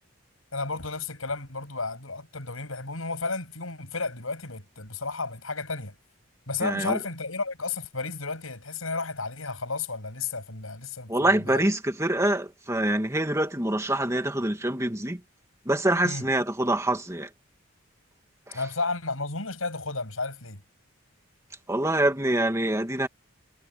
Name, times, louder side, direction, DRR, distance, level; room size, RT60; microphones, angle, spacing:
voice 1, 0.5-5.9 6.5-11.6 16.0-16.3 18.5-20.6, left 3 dB, 85° left, 7.5 m, -32 dB
voice 2, 6.6-7.0 11.1-15.2 15.7-17.3 18.5-18.6 21.7-23.1, right 1 dB, 15° right, 2.4 m, -25 dB
head